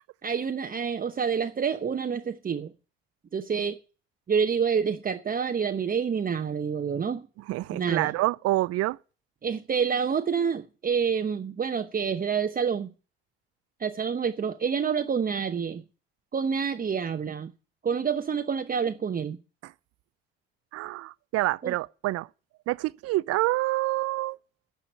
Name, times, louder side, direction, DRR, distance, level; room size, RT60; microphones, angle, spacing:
voice 1, 0.2-2.7 3.3-3.8 4.3-7.3 7.7-8.1 9.4-12.9 13.8-15.8 16.3-17.5 17.8-19.4 21.6-21.7, right 6 dB, 30° right, 0.9 m, -28 dB
voice 2, 7.5-9.0 19.6-19.7 20.7-22.3 22.7-24.4, right 17 dB, 55° right, 0.6 m, -27 dB
9.9 x 6.9 x 8.6 m
hypercardioid pair, 55°, 30 cm